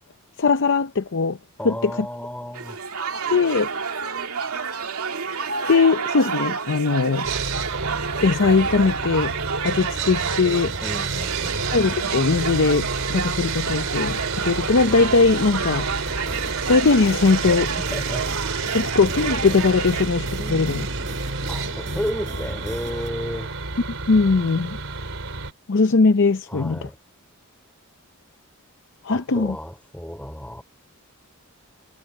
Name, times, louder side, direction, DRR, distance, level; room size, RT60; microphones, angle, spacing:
voice 1, 0.4-1.4 1.6-1.9 3.3-3.7 5.7-7.3 8.2-9.3 9.6-10.7 11.7-15.9 16.7-17.7 18.7-20.9 24.1-24.8 25.7-26.8 29.0-29.6, left 4 dB, 60° left, 0.6 m, -20 dB
voice 2, 1.6-2.8 10.8-11.6 17.5-18.3 20.4-20.7 21.5-23.5 26.5-27.0 29.1-30.6, equal, 5° left, 4.9 m, -33 dB
sound 1, 2.5-20.0, right 5 dB, 85° right, 2.2 m, -30 dB
Sawing, 7.2-25.5, right 4 dB, 65° right, 4.8 m, -29 dB
sound 2, 15.9-23.1, right 1 dB, 35° right, 4.9 m, -38 dB
head